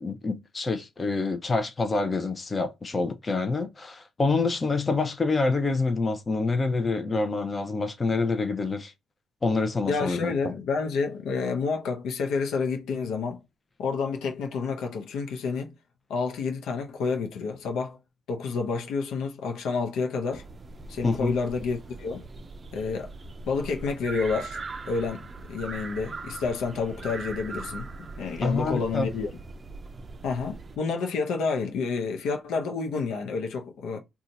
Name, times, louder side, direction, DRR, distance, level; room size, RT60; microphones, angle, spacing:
voice 1, 0.0-8.9 9.4-10.5 21.0-21.3 28.4-29.1, left 3 dB, 30° left, 0.7 m, -27 dB
voice 2, 9.9-13.4 13.8-15.7 16.1-18.0 18.3-20.4 20.9-22.2 22.7-23.1 23.5-24.6 24.9-29.3 30.2-34.0, left 4 dB, 85° left, 0.7 m, -29 dB
sound 1, 20.3-30.8, right 3 dB, 30° right, 0.4 m, -40 dB
2.7 x 2.4 x 3.9 m
cardioid pair, 90°, 0 cm